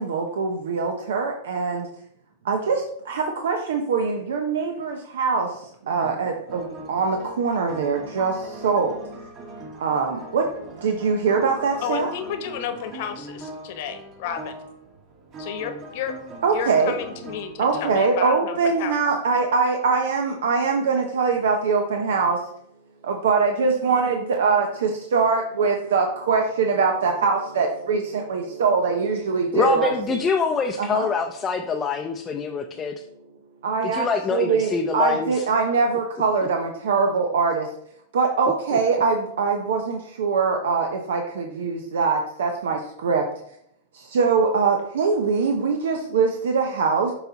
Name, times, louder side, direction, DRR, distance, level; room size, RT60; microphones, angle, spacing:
voice 1, 0.0-1.9 2.4-9.0 9.8-10.4 10.8-12.1 16.4-16.9 17.6-22.4 23.0-29.9 30.8-31.1 33.6-37.7 38.1-43.2 43.9-47.1, right 5 dB, 85° right, 3 dB, 0.8 m, -23 dB
sound 1, 6.5-18.0, right 2 dB, 35° right, 1.5 m, -40 dB
voice 2, 11.8-14.5 15.4-16.1 16.5-18.9, left 8 dB, 60° left, 7 dB, 1.1 m, -32 dB
voice 3, 29.5-33.0 33.8-35.4 38.7-38.8, left 5 dB, 20° left, 3 dB, 0.5 m, -25 dB
7.0 x 4.1 x 4.0 m, 0.72 s
supercardioid pair, 135°, 0 cm